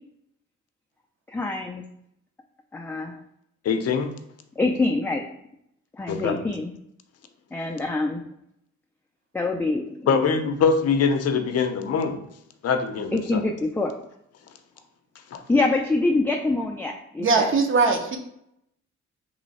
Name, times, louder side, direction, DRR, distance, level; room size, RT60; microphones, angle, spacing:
voice 1, 1.3-1.8 2.7-3.2 4.6-5.2 5.9-6.7 7.5-8.2 9.3-10.2 13.1-13.9 15.5-17.5, left 2 dB, 5° left, 1 dB, 0.3 m, -25 dB
voice 2, 3.6-4.1 6.1-6.4 10.1-12.2 12.6-13.4 15.3-15.4, left 5 dB, 55° left, 7 dB, 0.6 m, -23 dB
voice 3, 17.2-18.2, right 4 dB, 40° right, 5 dB, 0.7 m, -20 dB
3.1 x 3.0 x 4.1 m, 0.75 s
cardioid pair, 90°, 30 cm